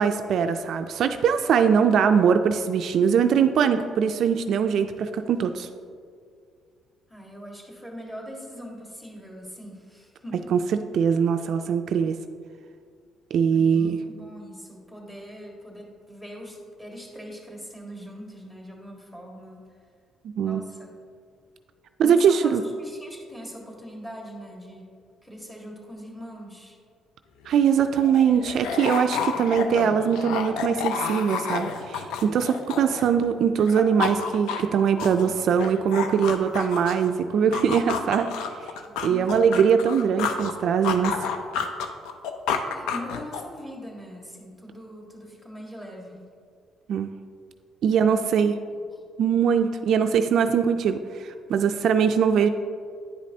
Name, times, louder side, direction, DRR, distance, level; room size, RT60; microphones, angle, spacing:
voice 1, 0.0-5.7 10.5-12.2 13.3-14.0 20.3-20.6 22.0-22.6 27.5-38.3 39.0-41.3 46.9-47.1 47.8-48.6 49.2-52.5, right 7 dB, 60° right, 8 dB, 0.3 m, -22 dB
voice 2, 7.1-10.5 13.5-19.7 20.4-20.9 22.0-25.0 25.2-26.8 38.8-39.4 42.7-46.3 47.8-48.4 48.9-49.0, equal, 10° left, -2 dB, 1.6 m, -41 dB
sound 1, 27.4-27.5 27.8-33.3 33.6-37.1 37.5-40.5 40.8-43.6, left 6 dB, 90° left, 0.5 m, -30 dB
9.9 x 5.2 x 2.8 m, 2.2 s
cardioid pair, 105°, 0 cm